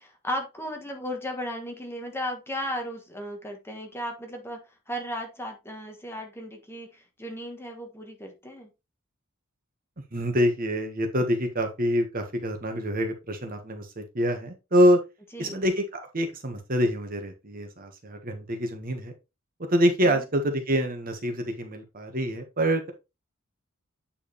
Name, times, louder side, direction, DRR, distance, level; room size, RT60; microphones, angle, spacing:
voice 1, 0.0-4.6 4.9-8.7 15.3-15.6 20.0-20.2, equal, 10° left, 3 dB, 1.4 m, -35 dB
voice 2, 10.1-15.0 15.4-19.1 19.6-22.9, equal, 45° right, 5 dB, 1.5 m, -26 dB
8.7 x 4.9 x 3.2 m, 0.25 s
head